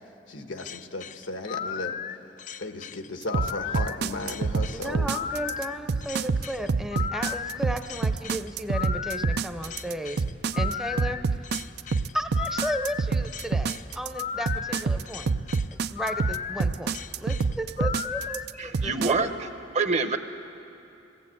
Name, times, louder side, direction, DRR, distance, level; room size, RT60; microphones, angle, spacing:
voice 1, 0.3-1.9 2.6-5.1, left 2 dB, 85° left, 6 dB, 1.4 m, -35 dB
sound 1, 0.6-18.5, left 8 dB, 40° left, 0.4 m, -35 dB
sound 2, 3.3-19.1, right 4 dB, 60° right, 0.5 m, -26 dB
voice 2, 4.7-10.2 10.5-11.2 12.1-15.3 15.7-19.3, equal, 5° right, 7 dB, 0.7 m, -34 dB
voice 3, 18.6-19.5 19.7-20.2, right 4 dB, 40° right, 9 dB, 0.9 m, -26 dB
21.0 x 17.0 x 8.4 m, 2.8 s
head